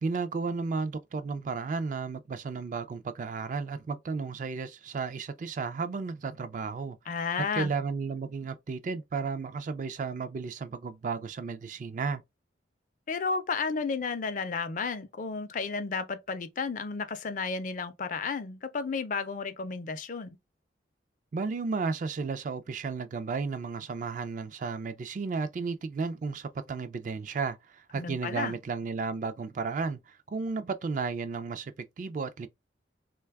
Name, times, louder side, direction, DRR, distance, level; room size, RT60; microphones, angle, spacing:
voice 1, 0.0-7.0 7.6-12.2 21.3-32.5, right 4 dB, 45° right, 0.3 m, -33 dB
voice 2, 7.1-7.7 13.1-20.4 27.9-28.5, left 5 dB, 45° left, 0.4 m, -32 dB
3.2 x 2.2 x 3.3 m
head